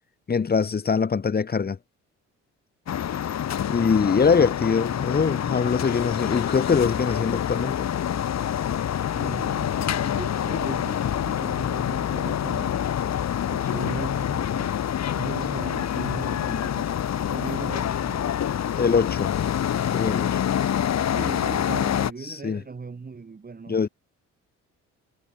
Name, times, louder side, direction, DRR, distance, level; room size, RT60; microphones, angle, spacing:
voice 1, 0.3-1.8 3.7-7.9 18.8-19.3 19.9-20.4 22.3-22.6 23.7-23.9, left 5 dB, 30° left, 1.5 m, -23 dB
sound 1, 2.9-22.1, left 10 dB, 60° left, 3.3 m, -26 dB
voice 2, 9.1-12.8 13.5-14.7 15.1-16.9 17.3-18.4 21.1-23.8, right 4 dB, 30° right, 4.1 m, -38 dB
cardioid pair, 90°, 30 cm